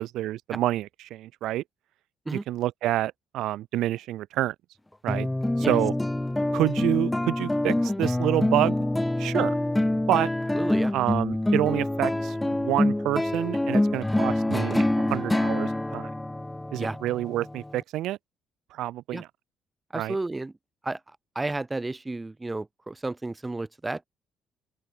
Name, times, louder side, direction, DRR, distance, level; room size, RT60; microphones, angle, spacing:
voice 1, 0.0-1.6 2.3-4.5 5.0-5.3 5.6-5.9 6.5-8.8 9.2-9.5 10.1-10.3 10.9-16.1 16.7-18.2 18.7-19.3 19.9-20.2, right 14 dB, 75° right, 2.3 m, -28 dB
sound 1, 5.1-17.8, left 1 dB, 10° left, 2.6 m, -26 dB
voice 2, 10.5-10.9 16.8-17.0 19.1-19.2 19.9-20.5 20.8-21.0 21.4-24.1, right 2 dB, 20° right, 2.1 m, -32 dB
open air
hypercardioid pair, 55°, 0 cm